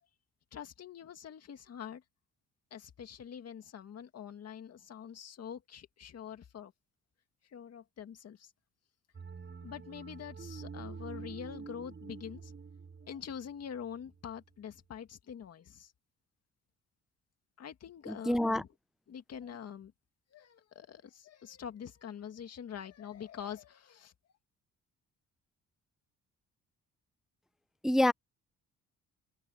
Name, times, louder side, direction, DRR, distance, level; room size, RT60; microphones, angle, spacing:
voice 1, 0.5-2.0 2.7-6.7 7.5-8.5 9.6-12.5 13.0-15.9 17.6-18.7 19.1-19.9 20.3-24.1, left 8 dB, 55° left, 2.2 m, -45 dB
sound 1, 9.1-14.4, right 5 dB, 35° right, 7.2 m, -47 dB
voice 2, 18.1-18.6 27.8-28.1, left 1 dB, ahead, 0.5 m, -27 dB
cardioid pair, 90°, 30 cm